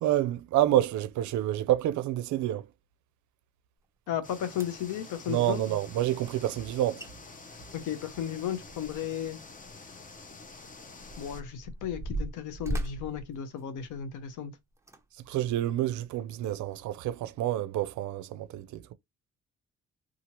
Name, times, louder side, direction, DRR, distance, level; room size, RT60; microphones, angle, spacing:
voice 1, 0.0-2.7 5.3-7.0 15.3-18.9, right 13 dB, 70° right, 0.5 m, -28 dB
voice 2, 4.1-5.6 7.7-9.4 11.2-14.5, left 9 dB, 85° left, 0.7 m, -34 dB
sound 1, 4.1-4.2 4.5-4.9 6.7-6.8 7.0-7.1 7.4-9.2 9.6-9.7 10.4-14.2 14.8-15.0 15.6-15.7, right 1 dB, 10° right, 0.6 m, -38 dB
sound 2, 4.2-11.4, left 3 dB, 25° left, 0.6 m, -48 dB
2.8 x 2.4 x 2.9 m
cardioid pair, 90°, 30 cm